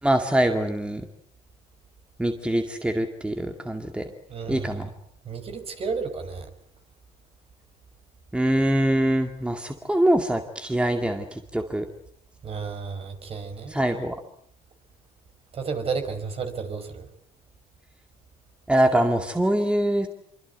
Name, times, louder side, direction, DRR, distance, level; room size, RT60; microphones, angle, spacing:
voice 1, 0.0-1.1 2.2-4.1 4.5-4.9 8.3-11.9 13.7-14.2 18.7-20.1, right 1 dB, 5° right, 6 dB, 2.2 m, -24 dB
voice 2, 4.3-4.9 5.2-6.5 12.4-13.9 15.5-17.1, right 5 dB, 45° right, 8 dB, 5.2 m, -32 dB
25.5 x 24.5 x 8.2 m, 0.66 s
cardioid pair, 100°, 14 cm